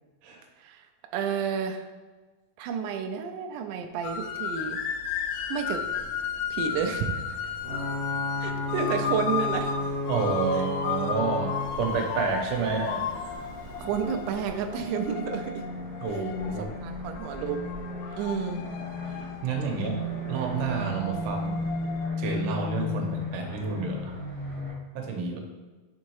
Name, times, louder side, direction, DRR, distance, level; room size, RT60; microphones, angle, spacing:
voice 1, 1.1-1.9 2.6-4.8 5.5-5.8 6.5-7.5 8.4-9.7 10.5-10.6 12.6-12.7 13.8-15.6 16.1-16.2 16.6-17.7 18.2-18.6 19.7-19.8, right 6 dB, 90° right, 5 dB, 1.8 m, -31 dB
sound 1, 4.0-22.1, left 8 dB, 85° left, 2.3 m, -34 dB
sound 2, 5.7-24.7, left 2 dB, 55° left, 0.4 m, -37 dB
Ocean / Boat Water vehicle / Alarm, 7.6-15.2, left 1 dB, 45° right, 0.8 m, -34 dB
voice 2, 10.1-13.0 16.0-16.7 19.2-20.0 20.3-21.6 22.2-24.2 25.0-25.4, right 5 dB, 75° right, 2 dB, 2.1 m, -30 dB
6.2 x 3.6 x 4.6 m, 1.3 s
omnidirectional pair, 4.2 m